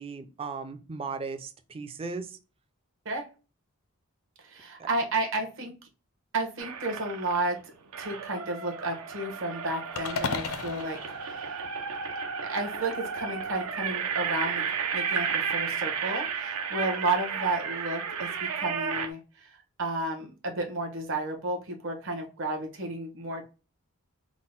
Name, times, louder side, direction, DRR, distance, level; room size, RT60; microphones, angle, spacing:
voice 1, 0.0-2.4, right 4 dB, 25° right, 8 dB, 0.4 m, -37 dB
voice 2, 4.4-5.7 6.3-7.6 8.0-11.6 12.4-14.6 14.9-23.4, right 2 dB, 60° right, 3 dB, 1.1 m, -32 dB
sound 1, 6.6-7.5 7.9-19.1, right 6 dB, 75° right, 0.6 m, -33 dB
sound 2, 10.0-12.3, left 4 dB, 75° left, 0.5 m, -35 dB
3.7 x 2.1 x 3.6 m, 0.32 s
head